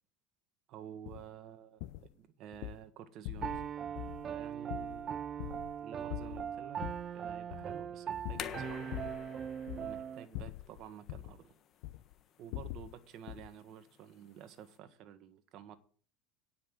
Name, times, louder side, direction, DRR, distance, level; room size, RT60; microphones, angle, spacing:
voice 1, 0.7-3.6 4.3-5.5 5.8-6.8 7.1-9.0 9.7-11.5 12.4-15.8, right 9 dB, 55° right, 1.5 m, -51 dB
sound 1, 1.1-1.3 1.8-2.1 2.5-2.8 3.3-3.7 4.0-4.3 4.7-5.8 6.1-7.1 7.5-7.8 8.2-9.3 9.6-10.0 10.3-11.4 11.8-12.1 12.5-13.0 13.3-13.5, left 16 dB, 70° left, 0.4 m, -43 dB
Piano, 3.4-10.2, right 8 dB, 35° right, 0.4 m, -40 dB
sound 2, 8.1-14.8, left 9 dB, 45° left, 1.3 m, -50 dB
9.8 x 5.8 x 7.3 m
supercardioid pair, 105°, 0 cm